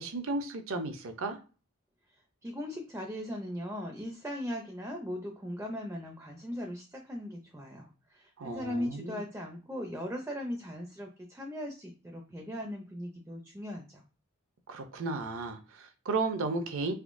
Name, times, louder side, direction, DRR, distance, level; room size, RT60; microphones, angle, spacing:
voice 1, 0.0-1.4 8.4-9.2 14.7-16.9, right 3 dB, 65° right, 0.5 m, -34 dB
voice 2, 2.4-14.0, left 1 dB, 10° right, 0.4 m, -38 dB
3.6 x 2.6 x 2.5 m
head